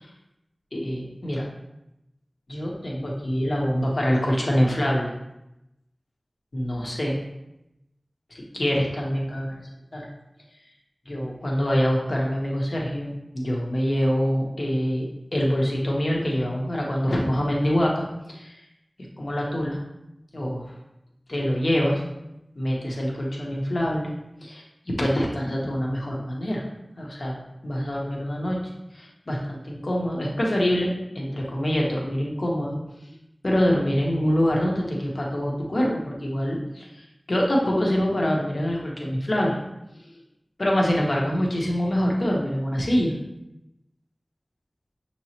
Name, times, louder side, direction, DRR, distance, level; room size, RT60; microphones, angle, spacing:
voice 1, 0.7-1.5 2.5-5.1 6.5-7.2 8.3-9.6 9.9-10.1 11.1-15.1 15.3-18.6 19.2-19.8 20.3-20.7 21.3-22.0 22.6-24.1 24.4-26.6 27.0-27.4 27.6-28.6 28.9-32.8 33.4-39.6 40.6-43.1, equal, 65° left, -2 dB, 1.0 m, -25 dB
6.0 x 3.0 x 2.9 m, 0.89 s
wide cardioid pair, 55°, 0 cm